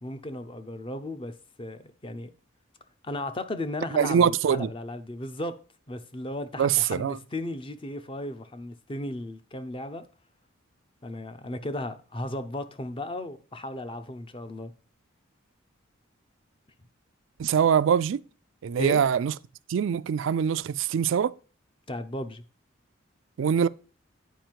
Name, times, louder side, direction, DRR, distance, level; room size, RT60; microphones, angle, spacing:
voice 1, 0.0-1.3 1.6-2.3 3.0-5.6 5.9-10.0 11.0-14.7 18.8-19.0 21.9-22.4, left 1 dB, 25° left, 0.6 m, -35 dB
voice 2, 3.9-4.7 6.6-7.2 17.4-18.2 18.6-19.3 19.7-21.3 23.4-23.7, right 7 dB, 65° right, 0.3 m, -23 dB
9.1 x 5.0 x 4.5 m
head